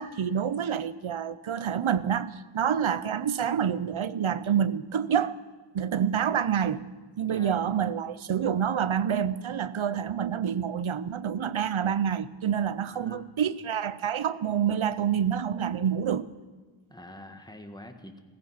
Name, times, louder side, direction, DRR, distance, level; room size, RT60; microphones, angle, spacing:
voice 1, 0.0-5.4 5.7-6.9 7.2-16.3, right 8 dB, 85° right, 0.7 m, -27 dB
voice 2, 7.3-7.6 12.9-13.2 16.9-18.2, left 1 dB, 10° left, 1.6 m, -45 dB
15.5 x 15.0 x 5.8 m
wide cardioid pair, 45°, 46 cm